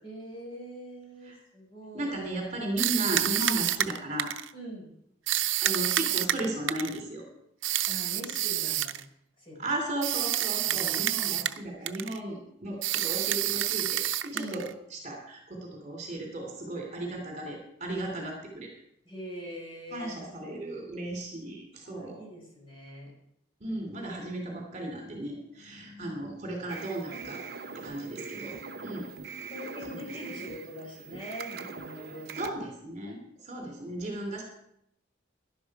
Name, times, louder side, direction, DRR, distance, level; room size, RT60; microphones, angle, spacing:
voice 1, 0.0-2.1 4.5-4.9 7.9-9.0 9.4-9.7 10.6-11.5 14.3-14.6 19.0-20.1 21.8-23.1 29.5-32.5 33.6-33.7, equal, 25° left, -2 dB, 5.7 m, -43 dB
voice 2, 1.9-4.3 5.6-7.2 9.6-14.6 14.9-18.7 19.9-22.2 23.6-27.4 27.7-28.5 28.8-29.1 29.9-30.4 32.4-34.4, right 1 dB, 35° right, 1 dB, 3.1 m, -35 dB
sound 1, 2.8-4.5 5.3-7.0 7.6-9.0 10.0-11.6 11.9-12.2 12.8-14.7, right 13 dB, 80° right, 0.7 m, -28 dB
sound 2, 26.7-32.5, right 4 dB, 55° right, 0.9 m, -42 dB
17.0 x 11.5 x 4.9 m, 0.77 s
head